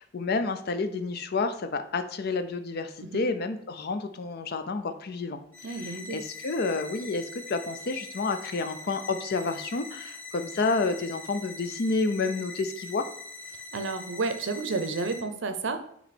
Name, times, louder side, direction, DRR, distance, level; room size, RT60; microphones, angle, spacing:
voice 1, 0.0-13.0, left 3 dB, 50° left, 9 dB, 0.5 m, -30 dB
sound 1, 5.5-15.2, left 3 dB, 10° left, 0.7 m, -43 dB
voice 2, 5.6-6.2 13.7-15.8, right 3 dB, 65° right, 8 dB, 0.6 m, -31 dB
8.2 x 3.0 x 4.3 m, 0.69 s
head